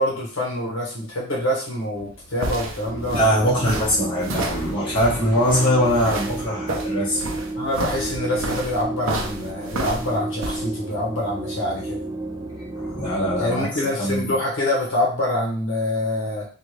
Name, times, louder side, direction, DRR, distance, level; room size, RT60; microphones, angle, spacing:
voice 1, 0.0-3.5 7.6-12.1 13.4-16.5, left 1 dB, 60° left, -3 dB, 1.0 m, -25 dB
sound 1, 2.0-10.6, right 2 dB, 70° right, 0.6 m, -31 dB
sound 2, 2.8-13.5, right 2 dB, 15° right, 0.4 m, -32 dB
voice 2, 3.1-7.2 12.7-13.7 14.0-14.4, equal, 20° left, -7 dB, 1.2 m, -22 dB
3.6 x 2.4 x 3.2 m, 0.40 s
head